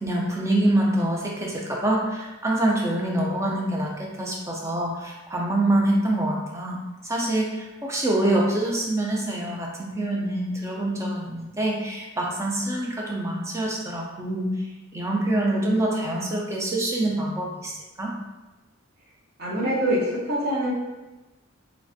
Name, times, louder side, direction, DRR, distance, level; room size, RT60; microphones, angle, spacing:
voice 1, 0.0-6.8 7.0-14.5 14.9-18.1, right 1 dB, 15° right, -2 dB, 0.4 m, -25 dB
voice 2, 19.4-20.7, equal, 45° right, -5 dB, 0.8 m, -24 dB
3.2 x 2.5 x 2.6 m, 1.1 s
head